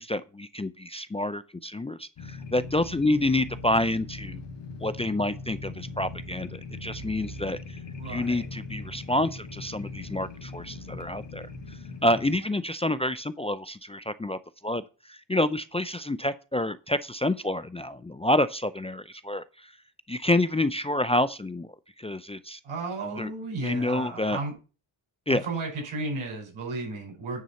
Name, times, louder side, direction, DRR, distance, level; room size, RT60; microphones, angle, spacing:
voice 1, 0.0-4.4 4.8-7.8 8.0-19.7 20.1-21.7 22.0-22.6 23.2-23.3 23.6-24.4 25.3-25.4, left 1 dB, 15° left, 0.4 m, -28 dB
sound 1, 2.2-12.3, left 3 dB, 60° left, 2.3 m, -40 dB
voice 2, 8.0-8.5 22.6-24.5 25.3-27.4, right 3 dB, 85° right, 5.3 m, -34 dB
9.4 x 4.0 x 6.8 m
cardioid pair, 80°, 48 cm